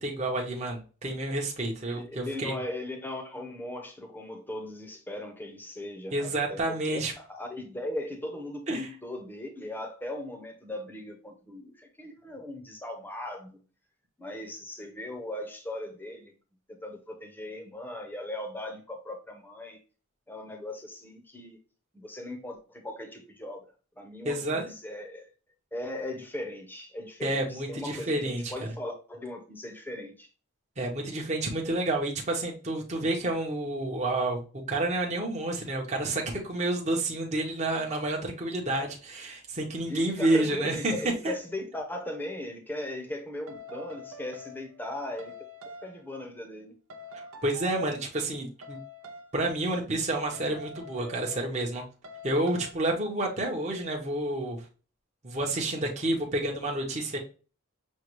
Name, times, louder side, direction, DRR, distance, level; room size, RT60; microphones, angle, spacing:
voice 1, 0.0-2.5 6.1-7.1 8.7-8.8 24.2-24.7 27.2-28.5 30.8-40.9 41.2-41.3 47.4-48.8 49.3-51.8 52.2-54.6 55.2-57.2, right 2 dB, 35° right, 0 dB, 0.8 m, -29 dB
voice 2, 1.9-13.6 14.2-16.3 16.8-19.8 20.3-21.6 21.9-25.3 25.7-30.3 39.9-45.3 45.6-46.7, left 1 dB, 10° left, 4 dB, 0.7 m, -38 dB
sound 1, 43.5-44.9 45.2-46.1 46.9-48.2 48.6-49.4 50.3-51.7 52.0-52.7, left 1 dB, 80° right, 0.6 m, -45 dB
6.3 x 2.2 x 3.0 m, 0.36 s
head